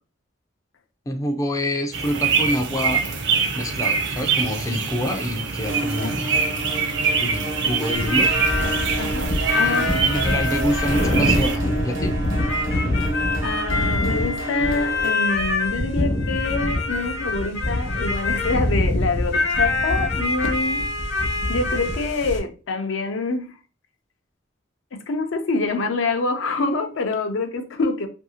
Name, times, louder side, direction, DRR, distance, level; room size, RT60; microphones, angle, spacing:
voice 1, 1.1-3.0 3.6-6.3 7.2-8.3 9.4-12.2, equal, 15° left, 0.3 m, -27 dB
sound 1, 1.9-11.6, right 5 dB, 65° right, 0.5 m, -24 dB
sound 2, 5.6-15.1, right 3 dB, 80° right, 0.9 m, -30 dB
sound 3, 7.9-22.4, left 2 dB, 65° left, 1.0 m, -24 dB
voice 2, 9.0-10.2 13.3-20.9 21.5-23.6 24.9-28.1, left 3 dB, 80° left, 0.5 m, -26 dB
2.7 x 2.6 x 2.7 m
head